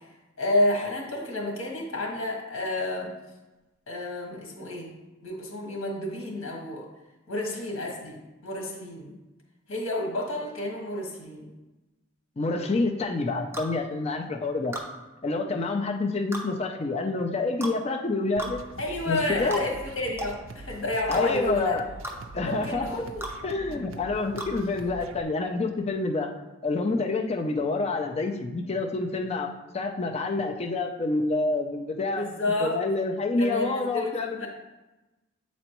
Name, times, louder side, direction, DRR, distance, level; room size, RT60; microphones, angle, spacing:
voice 1, 0.4-3.1 3.9-4.9 5.2-6.8 7.3-8.2 8.4-9.1 9.7-11.5 18.8-21.7 22.3-23.0 32.1-32.7 33.4-34.5, left 1 dB, 80° left, -1 dB, 1.6 m, -30 dB
voice 2, 12.4-14.7 15.2-18.6 19.1-19.6 21.1-21.9 22.3-23.0 23.4-26.3 26.6-32.3 32.6-34.5, left 3 dB, 30° left, 2 dB, 0.4 m, -28 dB
sound 1, 13.5-13.7 14.7-14.9 16.3-16.5 17.6-17.8 18.4-18.6 19.5-19.7 20.2-20.3 21.1-21.2 22.0-22.2 23.2-23.4 24.4-24.5, right 1 dB, 10° right, 0.6 m, -34 dB
sound 2, 18.4-25.2, right 2 dB, 75° right, 0.4 m, -44 dB
7.8 x 4.2 x 3.0 m, 1.1 s
head